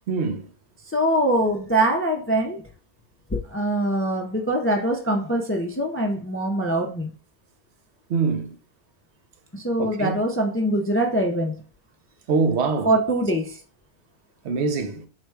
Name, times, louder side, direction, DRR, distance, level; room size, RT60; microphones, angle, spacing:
voice 1, 0.1-0.4 8.1-8.5 9.8-10.1 12.3-12.9 14.5-15.0, right 4 dB, 85° right, 0.9 m, -23 dB
voice 2, 0.9-2.6 3.3-7.1 9.5-11.5 12.8-13.6, right 1 dB, 20° left, 0.4 m, -23 dB
4.1 x 2.2 x 4.6 m
omnidirectional pair, 1.1 m